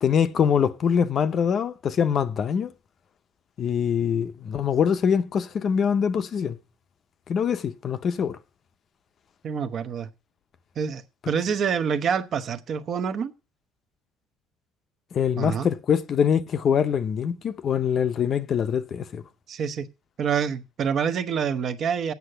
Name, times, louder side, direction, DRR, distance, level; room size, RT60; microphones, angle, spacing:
voice 1, 0.0-2.7 3.6-6.6 7.3-8.4 15.1-19.2, left 7 dB, 35° left, 0.6 m, -24 dB
voice 2, 9.4-10.1 10.8-13.3 15.4-15.7 19.5-19.9 20.2-22.1, right 7 dB, 40° right, 0.8 m, -27 dB
8.3 x 6.5 x 7.8 m
cardioid pair, 145°, 0 cm